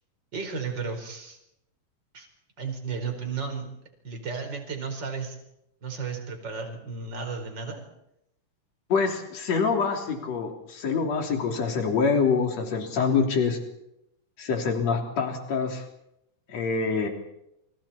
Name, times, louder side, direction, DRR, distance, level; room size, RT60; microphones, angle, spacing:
voice 1, 0.3-1.4 2.1-2.3 2.6-3.7 4.0-5.4 5.8-7.8, right 5 dB, 25° right, 4 dB, 5.1 m, -33 dB
voice 2, 8.9-13.6 14.4-15.8 16.5-17.1, left 5 dB, 45° left, 2 dB, 4.2 m, -25 dB
29.5 x 27.0 x 4.4 m, 0.81 s
omnidirectional pair, 4.4 m